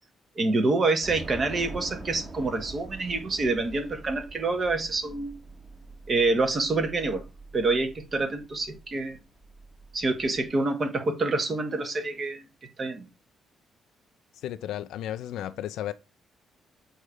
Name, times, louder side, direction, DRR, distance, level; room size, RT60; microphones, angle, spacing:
voice 1, 0.3-5.3 6.1-7.2 7.5-9.2 9.9-12.4 12.8-13.0, right 3 dB, 40° right, 1.8 m, -27 dB
Train / Subway metro underground, 1.0-10.5, right 2 dB, 25° right, 2.1 m, -44 dB
voice 2, 14.4-15.9, left 12 dB, 85° left, 0.4 m, -33 dB
7.8 x 3.2 x 4.9 m
cardioid pair, 90°, 0 cm